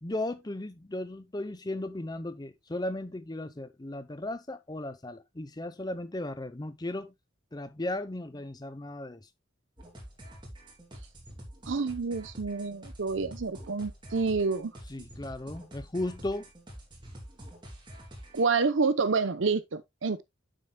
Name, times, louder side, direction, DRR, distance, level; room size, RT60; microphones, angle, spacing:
voice 1, 0.0-7.1 7.5-9.3 14.9-16.5, left 1 dB, 20° left, 0.7 m, -36 dB
sound 1, 9.8-18.4, equal, 25° right, 3.0 m, -47 dB
voice 2, 11.7-14.7 18.3-20.2, right 4 dB, 65° right, 0.7 m, -28 dB
9.1 x 7.5 x 2.2 m
head